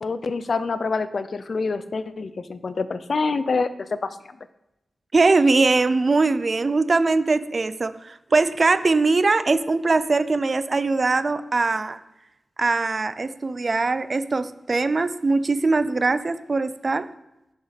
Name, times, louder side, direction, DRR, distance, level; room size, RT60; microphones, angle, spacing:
voice 1, 0.0-4.2, left 4 dB, 50° left, 13 dB, 0.4 m, -26 dB
voice 2, 5.1-12.0 12.6-17.1, right 3 dB, 35° right, 13 dB, 0.4 m, -21 dB
10.5 x 5.9 x 4.0 m, 0.89 s
wide cardioid pair, 170°, 0 cm